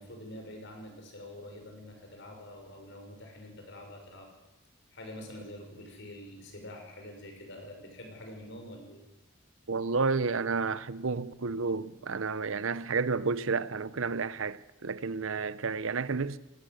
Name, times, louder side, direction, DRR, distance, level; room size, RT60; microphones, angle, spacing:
voice 1, 0.0-4.3 4.9-9.0, left 1 dB, 60° left, 5.9 m, -46 dB
voice 2, 9.7-16.4, right 4 dB, 70° right, 0.8 m, -31 dB
20.0 x 18.0 x 7.9 m
head